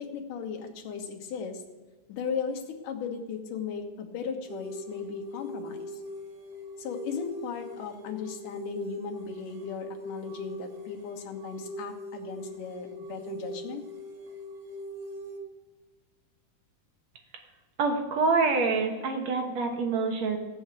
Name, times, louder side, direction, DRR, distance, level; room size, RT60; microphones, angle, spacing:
voice 1, 0.0-1.6 2.1-6.0 6.8-13.8, left 6 dB, 85° left, 3 dB, 2.9 m, -36 dB
sound 1, 4.5-15.4, equal, 85° right, 3.2 m, -41 dB
voice 2, 17.8-20.4, right 4 dB, 65° right, 4 dB, 2.3 m, -26 dB
15.5 x 6.3 x 8.2 m, 1.3 s
omnidirectional pair, 3.6 m